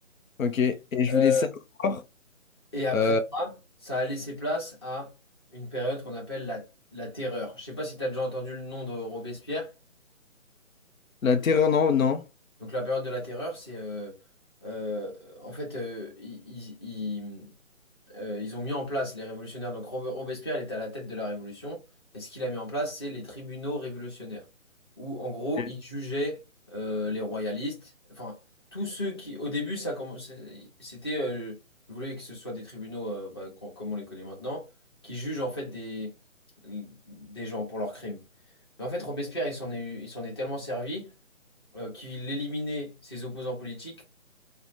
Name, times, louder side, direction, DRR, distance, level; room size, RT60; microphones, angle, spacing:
voice 1, 0.4-1.3 1.8-2.0 2.9-3.2 11.2-12.2, left 6 dB, 80° left, 0.6 m, -23 dB
voice 2, 1.1-1.5 2.7-3.5 3.8-5.1 5.5-6.6 6.9-9.7 12.6-14.2 14.6-17.5 18.1-21.8 22.1-24.4 25.0-26.4 26.7-28.4 28.7-31.6 31.9-34.6 35.0-36.1 36.6-38.2 38.8-41.1 41.7-44.1, left 1 dB, 20° left, 0.7 m, -33 dB
2.6 x 2.0 x 3.1 m
figure-of-eight pair, 150°, 40 cm